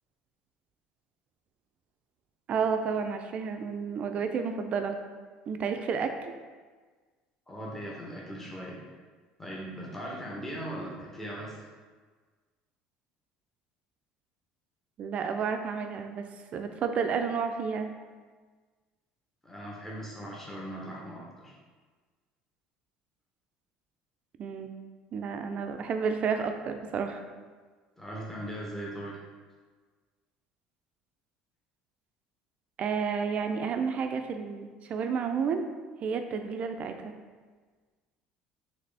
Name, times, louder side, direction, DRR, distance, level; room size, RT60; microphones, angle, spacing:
voice 1, 2.5-5.0 5.5-6.3 15.0-16.3 16.5-17.9 24.4-24.7 25.1-27.2 32.8-35.6 36.0-37.1, right 6 dB, 45° right, 6 dB, 0.4 m, -31 dB
voice 2, 7.5-8.8 9.4-11.6 19.4-21.5 28.0-29.2, right 1 dB, 10° left, -4 dB, 0.8 m, -39 dB
4.0 x 3.1 x 3.3 m, 1.4 s
supercardioid pair, 100°, 3 cm